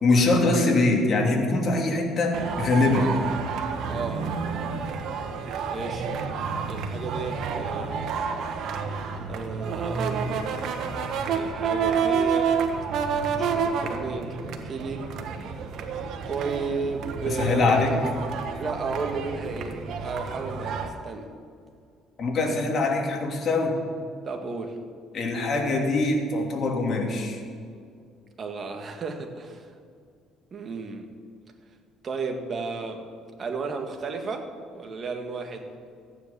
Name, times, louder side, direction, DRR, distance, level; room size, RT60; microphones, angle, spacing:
voice 1, 0.0-3.1 17.3-17.9 22.2-23.8 25.1-27.4, left 2 dB, 45° left, 1 dB, 2.9 m, -23 dB
sound 1, 2.3-20.9, right 6 dB, 70° right, 1.4 m, -29 dB
voice 2, 3.9-4.3 5.6-6.1 6.7-8.1 9.3-10.5 11.3-12.5 13.4-15.1 16.2-17.8 18.5-21.3 24.3-24.8 28.4-29.7 30.5-31.1 32.0-33.0 33.4-34.5 34.7-35.7, right 4 dB, 40° right, 4 dB, 2.0 m, -33 dB
15.0 x 9.8 x 7.1 m, 2.3 s
cardioid pair, 110°, 0 cm